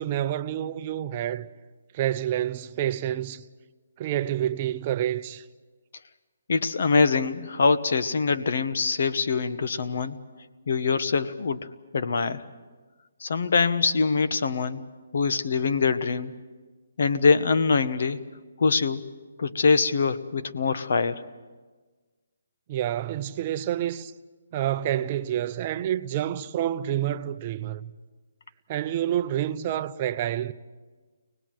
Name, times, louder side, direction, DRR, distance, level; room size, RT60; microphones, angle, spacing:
voice 1, 0.0-1.5 1.9-3.5 4.0-5.5 22.7-24.1 24.5-27.9 28.7-30.5, right 11 dB, 30° right, 0.7 m, -28 dB
voice 2, 6.5-10.2 10.7-11.7 11.9-12.4 13.2-14.9 15.1-16.3 17.0-18.2 18.6-19.1 19.4-21.2, left 4 dB, 60° left, 1.2 m, -24 dB
24.5 x 19.5 x 7.6 m
hypercardioid pair, 160°, 0 cm